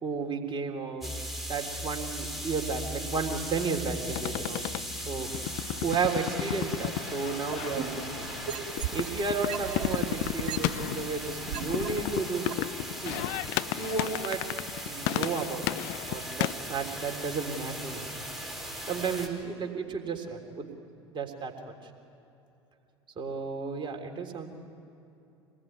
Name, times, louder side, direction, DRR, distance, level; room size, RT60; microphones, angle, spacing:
voice 1, 0.0-1.2 1.5-4.7 5.0-5.3 5.8-8.3 8.9-12.6 13.0-13.3 13.8-14.4 14.9-15.6 16.1-18.0 18.9-20.7 21.1-21.7 23.2-24.5, right 5 dB, 35° right, 3 dB, 3.5 m, -33 dB
sound 1, 1.0-19.3, equal, ahead, 4.5 m, -38 dB
sound 2, 4.1-16.5, left 16 dB, 60° left, 0.6 m, -34 dB
sound 3, 7.5-9.1 9.5-11.9 12.5-12.6, right 10 dB, 55° right, 2.8 m, -36 dB
26.5 x 20.5 x 9.5 m, 2.8 s
hypercardioid pair, 75°, 15 cm